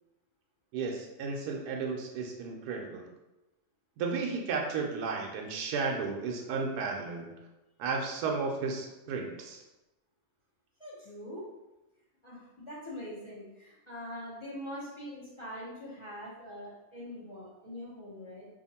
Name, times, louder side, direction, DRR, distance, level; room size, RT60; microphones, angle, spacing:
voice 1, 0.7-3.1 4.0-7.3 7.8-9.6, right 4 dB, 80° right, 0 dB, 1.1 m, -33 dB
voice 2, 10.8-11.5 12.2-18.5, equal, 25° left, -8 dB, 0.9 m, -43 dB
2.8 x 2.5 x 4.1 m, 0.98 s
omnidirectional pair, 1.7 m